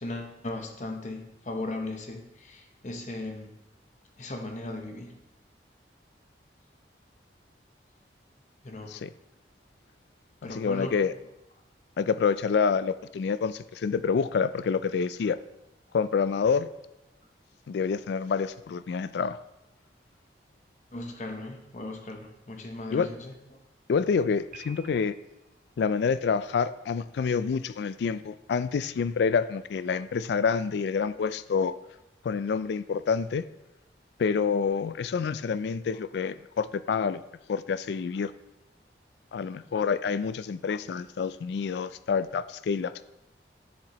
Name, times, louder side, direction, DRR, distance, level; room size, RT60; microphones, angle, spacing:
voice 1, 0.0-3.5 4.2-5.2 8.6-8.9 10.4-10.9 20.9-23.3, left 2 dB, 40° left, 3 dB, 0.8 m, -37 dB
voice 2, 10.4-11.1 12.0-15.4 15.9-16.7 17.7-19.4 22.9-23.1 23.9-25.1 25.8-31.7 32.2-33.4 34.2-37.2 37.5-38.3 39.3-43.0, left 5 dB, 65° left, 14 dB, 0.3 m, -27 dB
Piano, 24.5-25.5, right 7 dB, 50° right, 0.5 m, -50 dB
7.4 x 7.3 x 3.0 m, 0.93 s
head